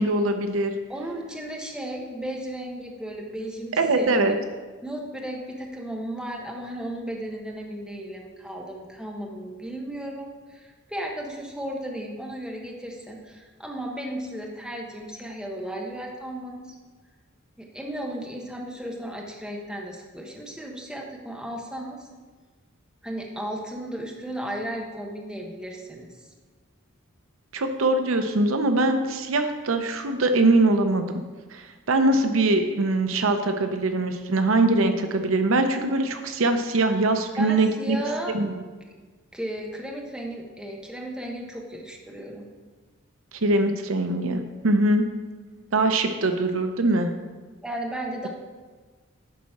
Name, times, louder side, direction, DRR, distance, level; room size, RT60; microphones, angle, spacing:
voice 1, 0.0-0.7 3.8-4.3 27.5-31.2 31.5-38.0 38.3-38.5 43.4-45.0 45.7-47.1, right 2 dB, 75° right, 7 dB, 0.7 m, -22 dB
voice 2, 0.9-4.3 4.8-16.6 17.6-22.1 23.0-26.1 37.4-38.3 39.3-42.5 47.6-48.3, right 1 dB, 5° right, 0 dB, 1.2 m, -35 dB
11.0 x 4.1 x 5.9 m, 1.4 s
head